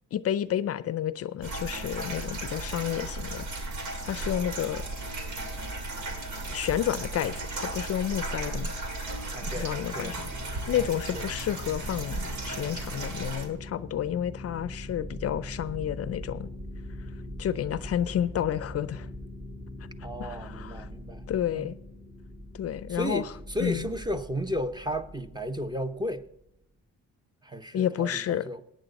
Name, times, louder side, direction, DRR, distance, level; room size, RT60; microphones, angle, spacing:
voice 1, 0.1-3.5 4.0-4.8 6.5-8.7 9.4-10.2 10.7-16.5 17.4-19.1 20.2-20.9 21.3-21.8 22.5-23.3 23.6-23.8 27.7-28.5, left 10 dB, 50° left, 0.5 m, -30 dB
sound 1, 1.4-13.5, right 2 dB, 75° right, 2.2 m, -35 dB
voice 2, 9.3-10.2 10.8-10.9 11.1-11.2 20.0-21.2 21.5-21.7 22.9-26.2 27.4-28.6, equal, 15° right, 0.9 m, -34 dB
sound 2, 10.0-26.2, left 1 dB, 30° right, 2.8 m, -42 dB
17.0 x 9.1 x 4.1 m
cardioid pair, 90°, 30 cm